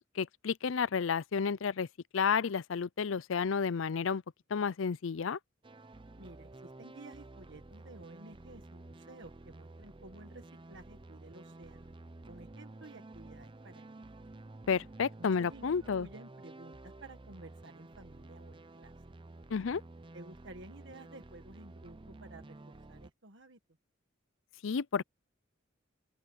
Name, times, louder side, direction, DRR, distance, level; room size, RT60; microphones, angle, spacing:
voice 1, 0.2-1.9 2.1-4.2 4.5-5.4 14.7-16.1 19.5-19.8 24.6-25.0, left 6 dB, 70° left, 0.5 m, -31 dB
sound 1, 5.6-23.1, right 2 dB, 25° right, 0.6 m, -51 dB
voice 2, 6.2-11.9 12.3-14.2 15.2-18.9 20.1-23.6, right 2 dB, 60° right, 1.6 m, -53 dB
open air
head